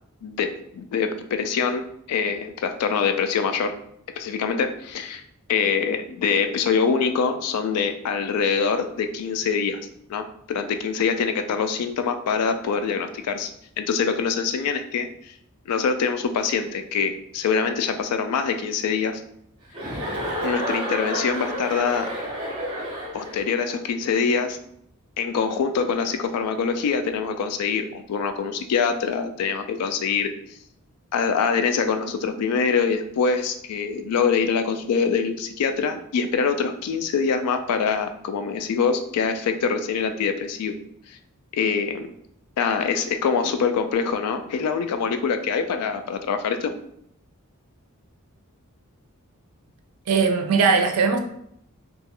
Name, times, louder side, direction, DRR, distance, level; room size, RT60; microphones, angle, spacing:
voice 1, 0.2-3.7 4.2-5.2 5.5-9.8 10.1-13.5 13.8-15.3 15.7-19.2 20.4-22.1 23.1-24.6 25.2-30.3 31.1-40.8 41.1-41.2 41.5-42.1 42.6-46.7, left 6 dB, 85° left, 8 dB, 0.3 m, -24 dB
Chuckle chortle, 19.7-23.5, equal, 20° right, 0.6 m, -30 dB
voice 2, 50.1-51.2, right 5 dB, 85° right, 6 dB, 0.4 m, -19 dB
2.4 x 2.2 x 2.8 m, 0.71 s
head